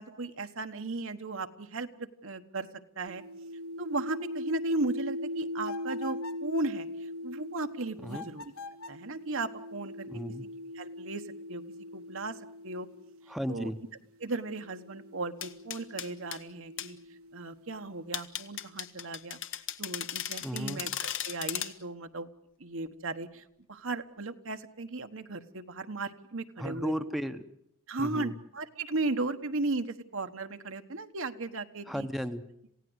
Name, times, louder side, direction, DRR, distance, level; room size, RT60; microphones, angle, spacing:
voice 1, 0.0-2.7 3.0-3.2 3.8-8.5 8.9-10.1 10.7-11.6 11.9-12.4 12.6-12.9 13.5-13.7 14.2-17.0 17.3-19.4 19.8-22.3 22.6-26.9 27.9-32.1, right 3 dB, 65° right, 7 dB, 1.3 m, -36 dB
sound 1, 3.1-13.4 14.3-18.1, left 1 dB, 90° right, 1.5 m, -41 dB
sound 2, 5.6-6.5 8.1-9.1, left 4 dB, 90° left, 1.1 m, -44 dB
voice 2, 10.1-10.4 13.3-13.8 20.4-20.8 26.6-27.4 28.0-28.3 31.9-32.4, equal, ahead, 7 dB, 1.0 m, -34 dB
sound 3, 15.4-16.4 16.8-16.9 18.1-21.7, left 10 dB, 60° left, 1.3 m, -36 dB
27.5 x 16.5 x 8.0 m, 0.75 s
head